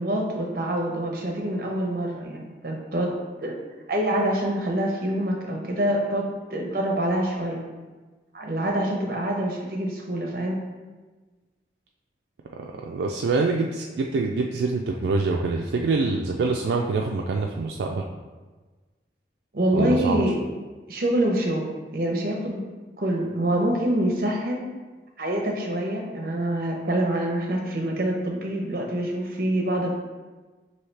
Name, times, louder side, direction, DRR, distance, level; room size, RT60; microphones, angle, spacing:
voice 1, 0.0-3.1 3.4-3.5 3.9-7.6 8.3-10.6 19.5-20.4 20.9-22.6 23.0-24.7 25.2-29.9, right 1 dB, 55° right, 0 dB, 0.8 m, -26 dB
voice 2, 12.5-18.0 19.7-20.2, right 3 dB, 75° right, 0 dB, 0.3 m, -25 dB
5.5 x 2.7 x 3.3 m, 1.3 s
head